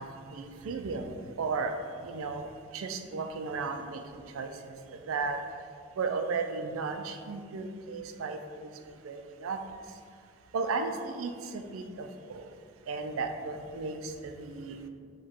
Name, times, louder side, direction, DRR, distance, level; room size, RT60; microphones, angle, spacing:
voice 1, 0.0-1.8 2.0-5.4 6.0-8.7 9.0-9.6 10.5-12.5 12.9-14.9, right 4 dB, 85° right, 6 dB, 0.4 m, -35 dB
4.7 x 2.3 x 4.3 m, 2.1 s
head